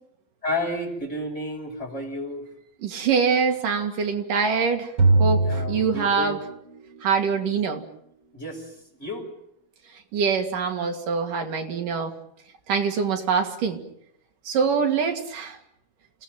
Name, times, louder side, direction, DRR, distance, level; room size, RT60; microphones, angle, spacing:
voice 1, 0.4-2.5 5.4-6.4 8.3-8.6 9.0-9.3, left 1 dB, 20° left, 2 dB, 6.3 m, -31 dB
voice 2, 2.8-4.9 5.2-6.4 7.0-7.8 10.1-12.1 12.7-13.8 14.5-15.6, right 5 dB, 75° right, 4 dB, 4.2 m, -24 dB
sound 1, 5.0-6.8, right 2 dB, 40° right, 4.0 m, -21 dB
29.5 x 19.0 x 9.2 m, 0.73 s
omnidirectional pair, 3.8 m